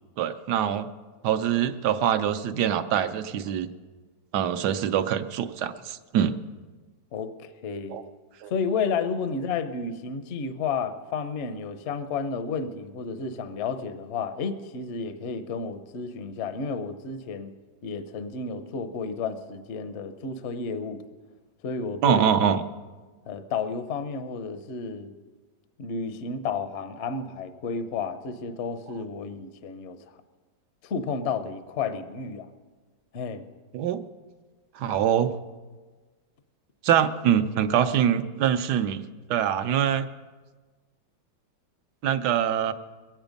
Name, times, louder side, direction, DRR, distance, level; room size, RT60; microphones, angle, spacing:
voice 1, 0.2-0.9 1.2-3.7 4.3-6.3 7.9-8.0 8.4-8.5 22.0-22.6 33.7-34.0 34.8-35.3 36.8-39.0 39.3-40.1 42.0-42.7, right 9 dB, 70° right, 10 dB, 1.2 m, -24 dB
voice 2, 7.1-8.0 8.5-17.5 17.8-21.0 21.6-22.2 23.3-25.1 25.8-30.2 30.8-32.5 33.1-33.4, left 5 dB, 50° left, 9 dB, 0.8 m, -32 dB
22.0 x 9.0 x 5.2 m, 1.3 s
omnidirectional pair, 2.0 m